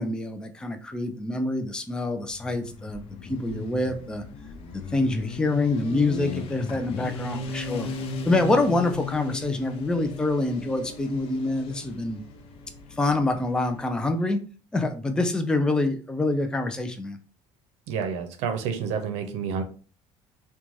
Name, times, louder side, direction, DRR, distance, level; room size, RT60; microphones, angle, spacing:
voice 1, 0.0-4.2 4.7-7.9 8.2-12.2 12.9-14.4 14.7-17.2, left 2 dB, 5° left, 6 dB, 0.3 m, -26 dB
Motorcycle, 2.2-13.9, left 4 dB, 60° left, 0.5 m, -37 dB
voice 2, 17.9-19.6, right 6 dB, 80° right, 6 dB, 0.6 m, -29 dB
3.0 x 2.2 x 2.5 m, 0.39 s
cardioid pair, 105°, 11 cm